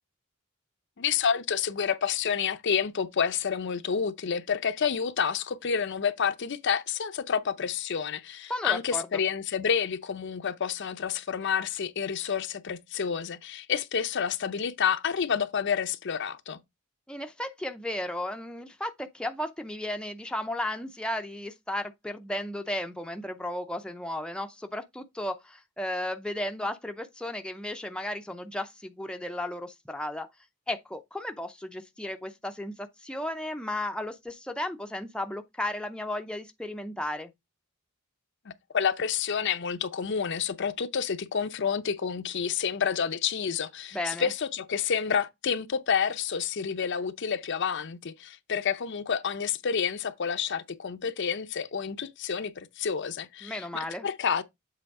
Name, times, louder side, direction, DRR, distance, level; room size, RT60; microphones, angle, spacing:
voice 1, 1.0-16.6 38.7-54.4, left 7 dB, 55° left, 0.6 m, -29 dB
voice 2, 8.5-9.1 17.1-30.3 30.7-37.3 43.9-44.3 53.4-54.1, left 1 dB, 5° left, 0.5 m, -34 dB
7.7 x 3.4 x 4.7 m
head